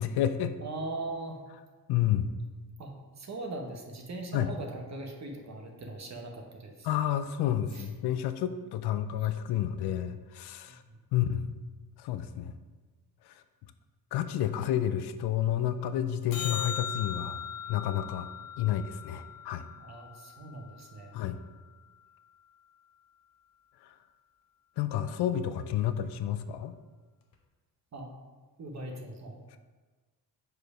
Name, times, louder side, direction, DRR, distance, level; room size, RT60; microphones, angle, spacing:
voice 1, 0.0-0.6 1.9-2.3 4.3-4.5 6.8-10.8 11.1-11.6 12.0-12.5 13.3-13.4 14.1-17.4 17.7-18.3 18.6-19.7 21.1-21.4 23.8-23.9 24.8-26.7, left 11 dB, 85° left, 10 dB, 0.5 m, -30 dB
voice 2, 0.6-1.4 2.8-6.9 7.7-7.9 10.7-11.0 19.8-21.1 27.9-28.1 28.6-29.4, right 2 dB, 45° right, 2 dB, 1.0 m, -40 dB
sound 1, 16.3-20.8 27.3-27.4, left 8 dB, 60° left, 1.0 m, -39 dB
5.0 x 4.8 x 4.8 m, 1.3 s
cardioid pair, 90°, 38 cm